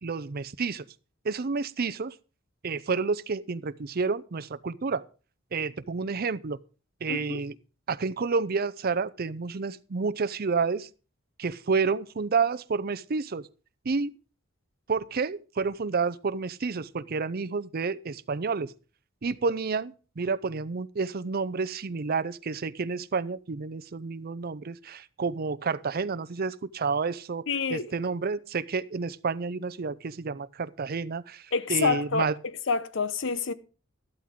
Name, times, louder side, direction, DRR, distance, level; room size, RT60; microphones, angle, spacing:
voice 1, 0.0-0.8 1.2-2.1 2.6-5.0 5.5-6.6 7.0-7.6 7.9-10.9 11.4-13.5 13.8-14.1 14.9-18.7 19.2-32.3, right 4 dB, 50° right, 0.6 m, -30 dB
voice 2, 7.1-7.4 27.5-27.9 31.5-32.3 32.7-33.5, left 5 dB, 65° left, 0.8 m, -27 dB
13.0 x 12.0 x 3.7 m
head